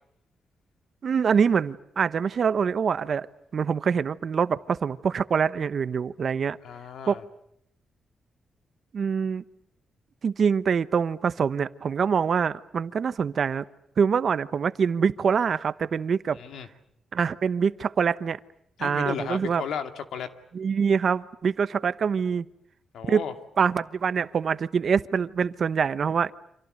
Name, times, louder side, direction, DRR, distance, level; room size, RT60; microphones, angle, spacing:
voice 1, 1.0-3.3 3.5-6.6 7.1-7.2 8.9-9.4 10.2-13.6 14.0-16.4 17.1-18.4 18.8-19.6 20.5-22.5 23.1-23.2 23.6-26.3, right 6 dB, 55° right, 15 dB, 1.0 m, -25 dB
voice 2, 6.6-7.2 16.3-16.7 18.8-20.3 22.9-23.3, left 7 dB, 85° left, 8 dB, 2.3 m, -34 dB
30.0 x 27.0 x 6.6 m, 0.75 s
cardioid pair, 105°, 0 cm